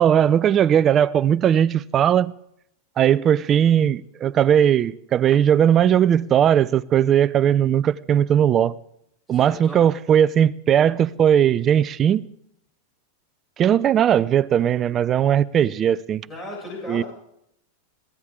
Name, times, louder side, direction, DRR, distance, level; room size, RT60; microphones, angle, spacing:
voice 1, 0.0-2.3 3.0-8.7 9.3-12.3 13.6-16.3 16.9-17.0, right 9 dB, 25° right, 0.5 m, -18 dB
voice 2, 9.3-9.8 16.3-17.1, left 1 dB, 5° left, 6.9 m, -36 dB
22.0 x 15.5 x 3.7 m
supercardioid pair, 155°, 0 cm